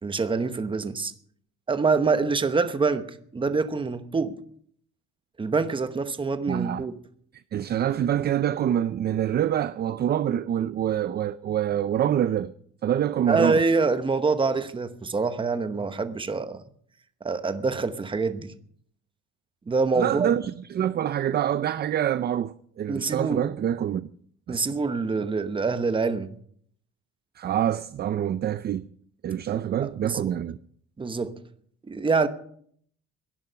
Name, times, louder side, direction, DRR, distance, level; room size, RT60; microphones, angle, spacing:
voice 1, 0.0-1.1 1.7-4.4 5.4-6.9 13.3-16.6 17.2-18.5 19.7-20.3 22.9-23.4 24.5-26.3 30.0-30.4 31.0-31.4 31.9-32.3, right 4 dB, 15° right, 1.0 m, -25 dB
voice 2, 6.5-6.8 7.5-12.5 12.8-13.6 20.0-24.1 24.5-24.6 27.4-28.9 29.2-30.6, right 10 dB, 35° right, 0.5 m, -26 dB
17.5 x 11.0 x 5.7 m
cardioid pair, 145°, 29 cm